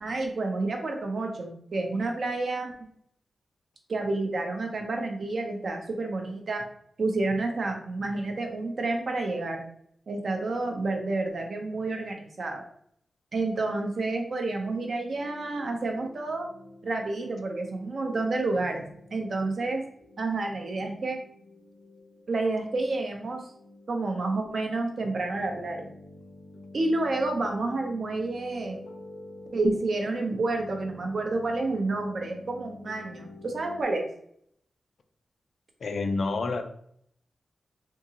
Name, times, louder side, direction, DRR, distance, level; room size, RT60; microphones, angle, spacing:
voice 1, 0.0-2.9 3.9-6.6 7.0-9.6 10.1-12.6 13.3-16.5 16.8-18.8 19.1-19.8 20.2-21.2 22.3-23.4 23.9-25.9 26.7-28.8 29.5-34.1, right 2 dB, 50° right, 3 dB, 0.6 m, -29 dB
sound 1, 14.6-33.8, left 2 dB, 80° left, 0.9 m, -49 dB
voice 2, 35.8-36.6, left 3 dB, 55° left, 6 dB, 0.4 m, -28 dB
3.5 x 2.8 x 2.8 m, 0.66 s
wide cardioid pair, 175°, 0 cm